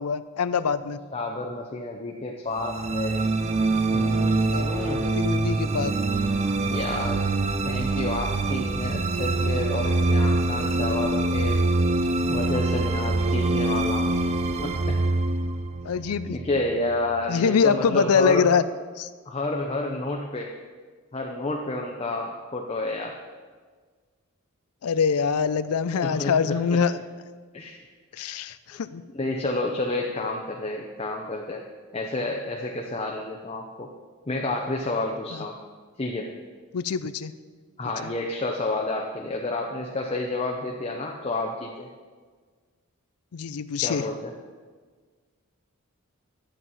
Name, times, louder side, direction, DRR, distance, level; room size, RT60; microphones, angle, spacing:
voice 1, 0.0-1.0 4.5-4.7 5.0-5.9 15.8-16.4 17.3-18.6 19.0-19.1 24.8-27.0 28.1-29.0 35.3-35.4 36.7-37.3 43.3-44.0, left 6 dB, 80° left, 14 dB, 0.4 m, -24 dB
voice 2, 1.1-3.3 3.9-5.1 6.7-7.3 7.6-11.6 12.3-14.3 14.6-15.0 16.3-18.5 19.3-20.6 21.1-23.1 26.0-26.5 27.5-27.8 29.1-31.6 31.9-33.9 34.3-35.6 36.0-36.3 37.8-41.9 43.8-44.3, left 2 dB, 25° left, 1 dB, 0.6 m, -30 dB
sound 1, 2.5-16.9, right 2 dB, 30° right, 0.4 m, -25 dB
11.0 x 7.5 x 4.1 m, 1.5 s
head